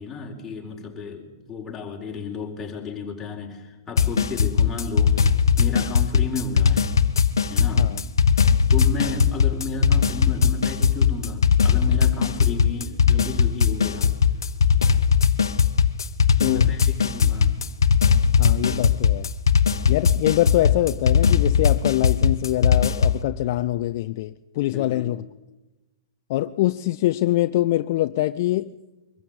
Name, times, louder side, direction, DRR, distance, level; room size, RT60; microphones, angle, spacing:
voice 1, 0.0-5.2 5.6-6.9 7.5-7.9 8.7-14.1 16.4-17.5 24.7-25.1, left 4 dB, 15° left, 4.5 m, -33 dB
sound 1, 4.0-23.2, left 6 dB, 85° left, 1.0 m, -19 dB
voice 2, 16.4-16.7 18.4-19.3 19.9-25.2 26.3-28.7, left 15 dB, 50° left, 0.6 m, -24 dB
23.5 x 14.0 x 8.9 m
hypercardioid pair, 130°, 2 cm